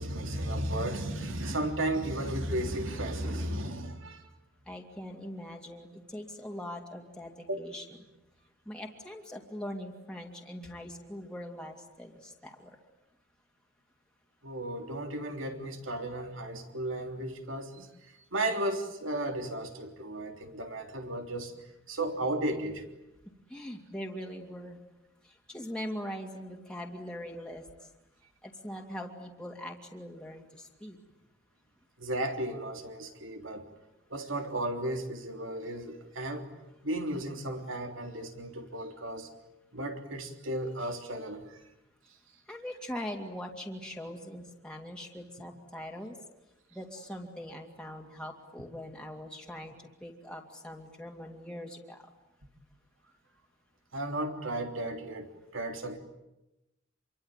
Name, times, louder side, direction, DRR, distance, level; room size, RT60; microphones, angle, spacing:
voice 1, 0.0-4.3 7.5-7.6 14.4-21.5 21.9-22.8 32.0-33.7 34.1-36.5 36.8-39.3 39.7-41.6 53.9-56.0, right 1 dB, 70° right, 5 dB, 3.5 m, -34 dB
voice 2, 4.7-7.8 8.7-12.7 23.5-24.8 25.2-27.9 28.4-31.0 42.5-46.2 46.7-49.7 50.0-52.1, equal, 5° left, 0 dB, 2.8 m, -42 dB
27.0 x 24.0 x 9.2 m, 0.91 s
head